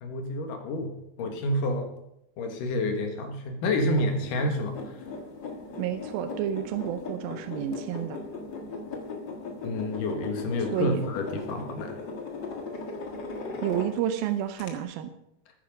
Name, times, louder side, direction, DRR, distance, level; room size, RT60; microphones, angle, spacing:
voice 1, 0.0-0.9 1.2-1.9 2.4-5.0 9.6-12.0, left 1 dB, 65° left, 5 dB, 2.9 m, -29 dB
sound 1, 3.7-14.2 14.6-14.7, left 3 dB, 45° left, 1.5 m, -38 dB
voice 2, 5.8-8.2 10.7-11.0 13.6-15.1, right 10 dB, 75° right, 8 dB, 2.5 m, -30 dB
13.0 x 10.0 x 5.3 m, 0.80 s
omnidirectional pair, 4.5 m